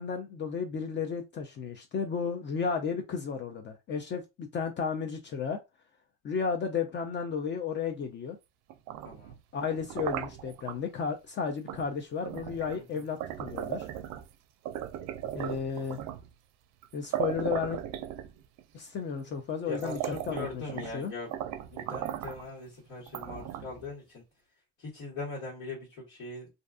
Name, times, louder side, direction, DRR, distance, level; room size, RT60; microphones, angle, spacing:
voice 1, 0.0-5.6 6.2-8.4 9.5-13.9 15.3-16.0 16.9-17.8 18.7-21.1, left 6 dB, 40° left, 0.5 m, -33 dB
sound 1, 8.7-10.8 11.7-11.9 12.2-14.3 14.7-16.3 16.8-16.9 17.1-18.6 19.3-19.4 19.7-21.0 21.3-22.5 23.1-23.9, right 11 dB, 65° right, 0.4 m, -37 dB
voice 2, 9.0-9.4 12.7-13.0 19.6-21.3 21.7-24.2 24.8-26.5, left 3 dB, 75° left, 1.5 m, -41 dB
2.6 x 2.3 x 2.4 m
supercardioid pair, 90°, 30 cm